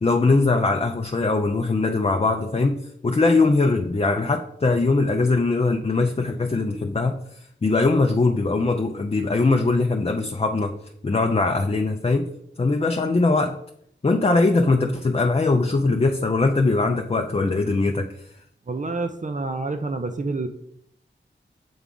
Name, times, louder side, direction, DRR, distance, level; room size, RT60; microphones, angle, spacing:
voice 1, 0.0-7.2 7.6-10.7 11.0-12.3 12.6-13.6 14.0-18.1, left 3 dB, 30° left, 3 dB, 0.5 m, -21 dB
voice 2, 18.7-20.5, right 3 dB, 40° right, 7 dB, 0.5 m, -28 dB
7.0 x 3.5 x 3.8 m, 0.71 s
wide cardioid pair, 50°, 20 cm